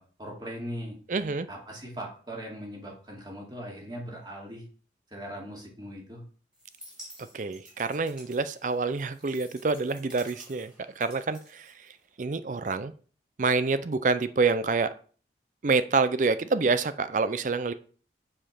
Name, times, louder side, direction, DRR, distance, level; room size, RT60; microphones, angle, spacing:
voice 1, 0.0-1.0 1.5-4.6 5.1-6.2, equal, 25° right, -2 dB, 2.5 m, -39 dB
voice 2, 1.1-1.5 7.2-11.7 12.2-12.9 13.4-14.9 15.6-17.7, right 4 dB, 45° right, 13 dB, 0.5 m, -27 dB
sound 1, 6.5-12.2, equal, 5° right, 2.7 m, -51 dB
7.2 x 5.0 x 5.8 m, 0.42 s
head